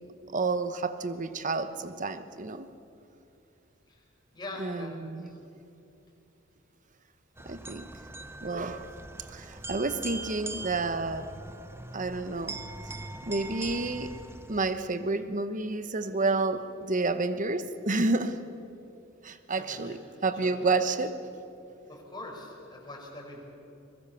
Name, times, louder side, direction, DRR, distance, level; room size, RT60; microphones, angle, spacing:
voice 1, 0.3-2.7 4.6-5.3 7.5-7.9 8.4-8.9 9.3-11.3 11.9-12.6 13.2-14.2 14.5-18.4 19.2-21.2, right 3 dB, 40° right, 11 dB, 1.1 m, -30 dB
voice 2, 4.3-5.4 19.6-20.6 21.9-23.4, left 1 dB, 20° left, -1 dB, 5.2 m, -43 dB
sound 1, 7.4-14.9, right 2 dB, 10° right, 0.8 m, -42 dB
23.5 x 21.5 x 7.1 m, 2.7 s
head